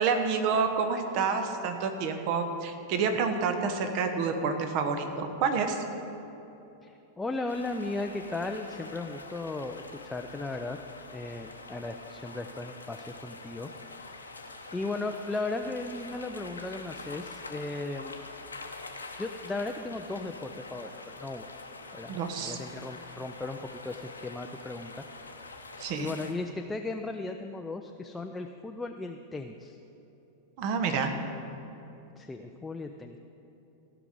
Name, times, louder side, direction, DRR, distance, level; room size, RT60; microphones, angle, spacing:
voice 1, 0.0-5.8 22.1-22.6 25.8-26.1 30.6-31.1, right 5 dB, 45° right, 6 dB, 1.2 m, -28 dB
voice 2, 6.8-10.8 11.1-13.7 14.0-14.1 14.7-18.1 19.2-21.5 21.9-25.0 26.0-29.8 32.2-33.2, left 2 dB, 10° left, 4 dB, 0.5 m, -36 dB
sound 1, 7.5-26.3, left 3 dB, 80° left, 0.9 m, -45 dB
15.5 x 6.0 x 8.4 m, 3.0 s
figure-of-eight pair, 90°, 0 cm